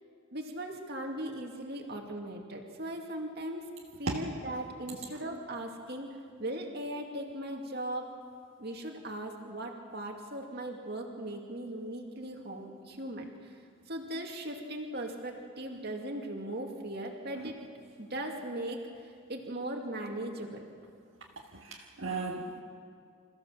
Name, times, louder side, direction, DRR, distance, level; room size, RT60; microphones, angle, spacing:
voice 1, 0.3-3.6 4.0-6.1 6.4-8.1 8.6-13.6 13.9-17.6 18.0-20.7, right 1 dB, 50° right, 2 dB, 2.4 m, -38 dB
voice 2, 21.6-22.6, right 3 dB, 65° right, -2 dB, 1.7 m, -35 dB
27.0 x 15.0 x 7.4 m, 2.2 s
head